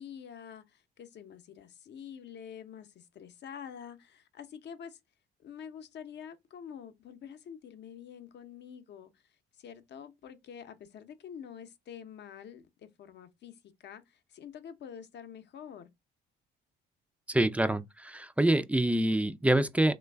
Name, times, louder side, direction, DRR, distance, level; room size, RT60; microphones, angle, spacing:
voice 1, 0.0-5.0 5.4-15.9, left 8 dB, 55° left, 0.7 m, -47 dB
voice 2, 17.3-19.9, right 1 dB, 5° right, 0.3 m, -26 dB
3.1 x 2.2 x 3.2 m
supercardioid pair, 65°, 21 cm